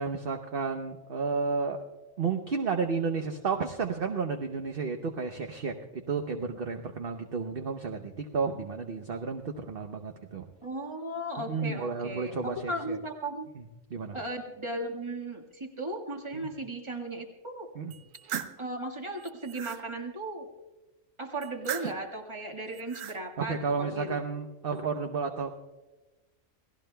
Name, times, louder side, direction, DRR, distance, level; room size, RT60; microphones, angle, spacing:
voice 1, 0.0-1.8 2.2-10.5 11.5-13.0 13.9-14.2 16.3-16.5 17.8-17.9 23.4-25.5, right 5 dB, 50° right, 4 dB, 0.9 m, -32 dB
voice 2, 10.6-13.4 14.1-17.7 18.6-20.5 21.2-24.2, right 1 dB, 20° right, 1 dB, 1.7 m, -36 dB
sound 1, 17.9-18.6 19.2-19.8 21.4-22.1 22.7-23.2, right 9 dB, 75° right, 1.1 m, -38 dB
29.0 x 17.5 x 2.2 m, 1.1 s
omnidirectional pair, 1.4 m